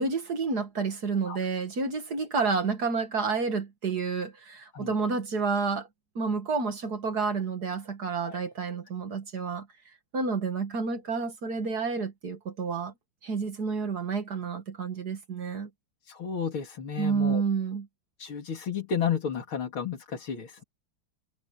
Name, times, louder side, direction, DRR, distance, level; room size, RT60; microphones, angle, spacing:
voice 1, 0.0-5.9 6.2-9.7 10.1-12.9 13.2-15.7 17.0-17.9, right 4 dB, 50° right, 2.3 m, -30 dB
voice 2, 16.1-17.4 18.2-20.6, left 7 dB, 85° left, 3.5 m, -32 dB
omnidirectional pair, 2.2 m